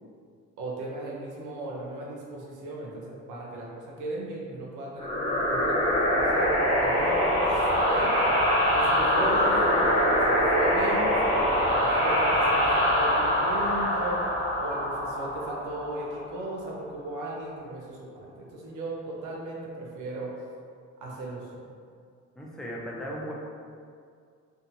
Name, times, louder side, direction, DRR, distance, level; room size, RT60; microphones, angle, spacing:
voice 1, 0.6-8.1 8.7-14.2 14.6-20.4 21.0-21.5, right 2 dB, 85° right, -3 dB, 0.6 m, -36 dB
sound 1, 5.0-16.3, equal, 20° left, 1.2 m, -24 dB
voice 2, 22.4-23.3, equal, ahead, -4 dB, 0.4 m, -36 dB
2.7 x 2.2 x 2.6 m, 2.2 s
cardioid pair, 90°, 30 cm